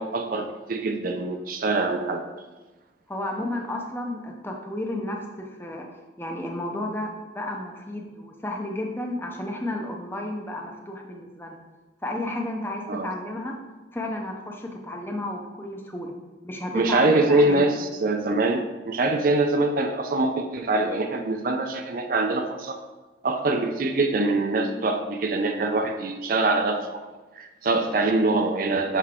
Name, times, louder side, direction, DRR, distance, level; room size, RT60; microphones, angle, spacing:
voice 1, 0.0-2.2 12.9-13.1 16.7-22.8 23.2-27.0 27.4-29.0, right 2 dB, 50° right, 6 dB, 0.5 m, -24 dB
voice 2, 3.1-5.9 6.2-11.6 12.0-13.6 13.9-16.1 16.4-17.7, left 1 dB, 10° left, 1 dB, 0.6 m, -32 dB
6.6 x 4.6 x 3.6 m, 1.2 s
head